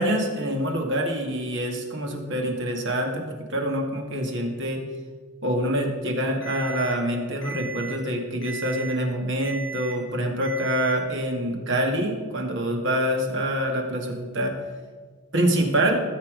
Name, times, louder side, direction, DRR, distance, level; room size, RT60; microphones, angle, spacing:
voice 1, 0.0-4.8 5.4-14.6 15.3-16.0, right 1 dB, 55° right, 2 dB, 2.2 m, -26 dB
Alarm, 6.4-6.9 7.4-7.9 8.4-8.9 9.4-9.9 10.4-10.9, right 5 dB, 55° left, 2.8 m, -36 dB
20.0 x 7.3 x 5.2 m, 1.5 s
head